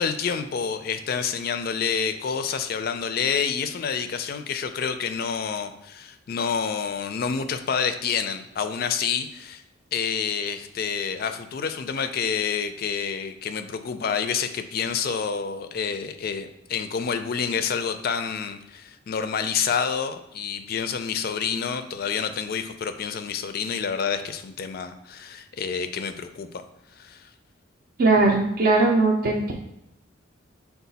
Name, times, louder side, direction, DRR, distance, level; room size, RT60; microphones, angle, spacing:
voice 1, 0.0-9.6 9.9-26.5 27.0-27.2, left 6 dB, 50° left, 9 dB, 0.4 m, -28 dB
voice 2, 28.0-29.5, right 3 dB, 50° right, -2 dB, 0.5 m, -19 dB
5.6 x 2.3 x 4.0 m, 0.86 s
head